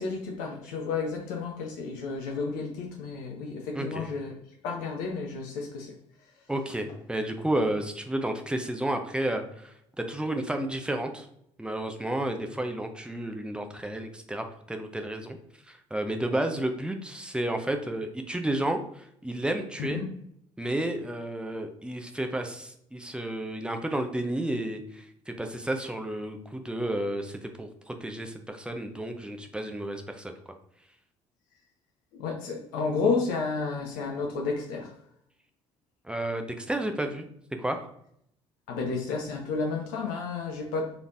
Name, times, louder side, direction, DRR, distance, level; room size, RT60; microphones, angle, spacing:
voice 1, 0.0-4.3 4.6-5.9 19.8-20.0 32.1-34.9 38.7-41.0, left 4 dB, 60° left, 1 dB, 0.7 m, -31 dB
voice 2, 3.7-4.1 6.5-11.3 11.6-15.4 15.7-20.0 20.6-30.3 36.0-37.3 37.6-37.9, right 1 dB, 5° right, 5 dB, 0.6 m, -31 dB
3.9 x 3.3 x 2.6 m, 0.72 s
figure-of-eight pair, 50°, 16 cm